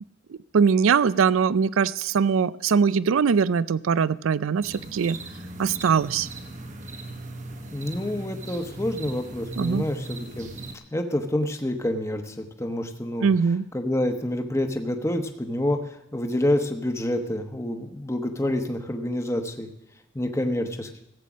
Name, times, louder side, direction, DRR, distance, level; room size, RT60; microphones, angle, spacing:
voice 1, 0.5-5.2 5.6-6.3 9.6-9.8 13.2-13.7, right 6 dB, 80° right, 19 dB, 0.4 m, -21 dB
sound 1, 4.6-10.7, right 2 dB, 35° right, 1.2 m, -38 dB
voice 2, 7.7-10.5 10.9-13.3 13.7-15.8 16.1-19.7 20.1-20.9, left 1 dB, 15° left, 6 dB, 1.1 m, -27 dB
16.0 x 8.4 x 6.1 m, 0.86 s
head